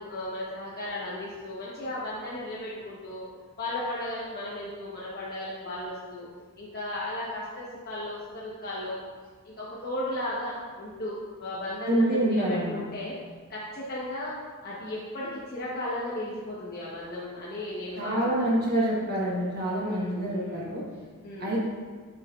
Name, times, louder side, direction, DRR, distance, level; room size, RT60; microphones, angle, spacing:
voice 1, 0.0-3.3 3.6-6.3 6.6-9.0 9.4-13.1 13.5-14.3 14.6-18.6 19.8-20.7 21.2-21.6, left 1 dB, 45° left, -7 dB, 1.0 m, -35 dB
voice 2, 11.9-12.8 18.0-20.8 21.4-21.6, right 1 dB, 45° right, -4 dB, 1.3 m, -26 dB
7.5 x 5.9 x 2.4 m, 1.5 s
head